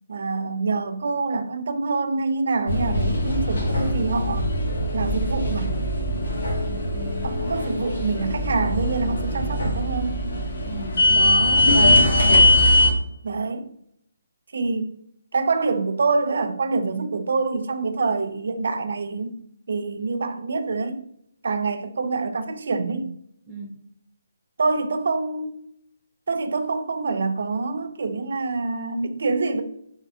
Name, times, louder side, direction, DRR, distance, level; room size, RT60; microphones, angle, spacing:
voice 1, 0.1-4.5 4.9-5.9 7.2-10.3 11.1-12.6 13.2-13.7 14.5-15.0 15.3-19.4 19.7-21.1 21.4-23.1 24.6-25.6 26.3-29.6, right 3 dB, 60° right, 0.4 m, -26 dB
sound 1, 2.7-12.9, left 1 dB, 75° left, 1.0 m, -21 dB
voice 2, 6.6-7.3 10.6-11.5 23.5-23.7, equal, 10° right, 0.8 m, -39 dB
3.6 x 2.1 x 2.7 m
hypercardioid pair, 175°, 0 cm